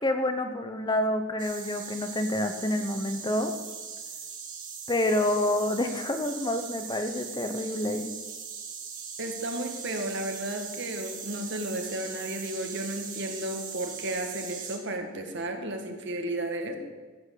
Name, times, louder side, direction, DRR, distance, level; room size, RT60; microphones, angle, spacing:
voice 1, 0.0-3.5 4.9-8.2, left 1 dB, 20° left, 7 dB, 0.8 m, -28 dB
sound 1, 1.4-14.8, right 6 dB, 40° right, 2.2 m, -40 dB
voice 2, 9.2-16.8, right 1 dB, 55° right, 4 dB, 1.8 m, -33 dB
15.0 x 8.1 x 6.5 m, 1.4 s
head